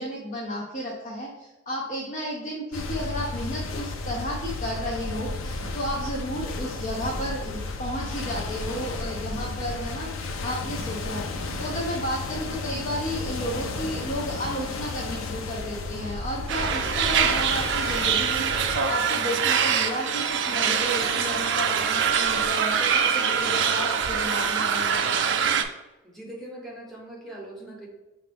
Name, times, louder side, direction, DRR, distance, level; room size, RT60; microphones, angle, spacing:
voice 1, 0.0-25.2, equal, 40° left, -4 dB, 0.6 m, -33 dB
sound 1, 2.7-18.8, left 3 dB, 80° left, 0.5 m, -33 dB
sound 2, 16.5-25.6, right 7 dB, 60° right, 0.4 m, -24 dB
voice 2, 26.0-27.9, right 1 dB, ahead, -3 dB, 0.9 m, -41 dB
5.6 x 2.5 x 3.4 m, 1.0 s
head